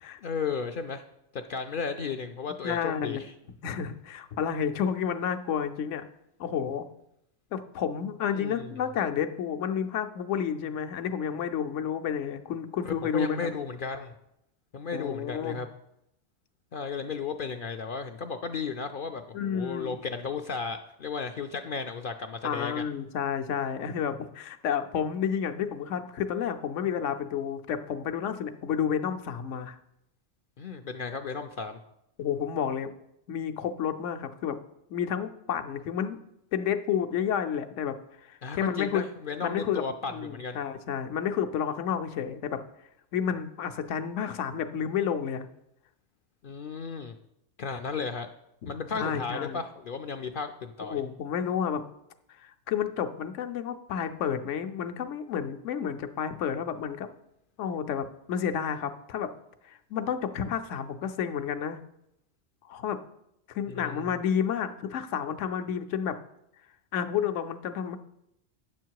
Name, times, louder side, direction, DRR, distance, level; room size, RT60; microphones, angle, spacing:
voice 1, 0.2-1.0 1.3-3.3 8.3-8.7 12.9-14.1 14.7-15.7 16.7-22.8 30.6-31.8 38.4-40.6 46.4-47.1 47.6-48.3 48.7-51.0 63.7-64.1, left 5 dB, 60° left, 6 dB, 0.6 m, -34 dB
voice 2, 2.6-3.2 3.6-6.0 6.4-6.9 7.5-13.5 14.9-15.6 19.3-19.9 22.4-29.8 32.2-32.9 33.3-34.6 34.9-36.2 36.5-38.0 38.3-39.1 39.4-39.8 40.1-42.6 43.1-45.5 49.0-49.6 50.9-51.8 52.4-57.1 57.6-59.3 59.6-61.8 62.7-63.0 63.5-66.2 66.9-68.0, left 8 dB, 80° left, 8 dB, 1.0 m, -30 dB
9.5 x 7.3 x 4.6 m, 0.81 s
omnidirectional pair, 1.2 m